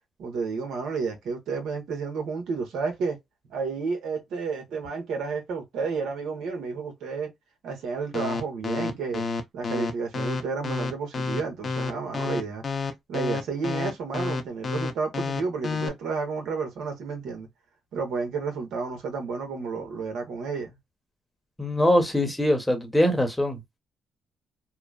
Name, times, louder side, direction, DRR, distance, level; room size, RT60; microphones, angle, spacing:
voice 1, 0.2-3.2 3.5-7.3 7.6-9.2 9.5-12.6 13.1-17.5 17.9-20.8, right 4 dB, 75° right, 1.1 m, -31 dB
sound 1, 8.1-15.9, left 4 dB, 45° left, 0.6 m, -29 dB
voice 2, 21.6-23.6, left 1 dB, 5° left, 0.9 m, -22 dB
2.9 x 2.0 x 2.3 m
cardioid pair, 90°, 0 cm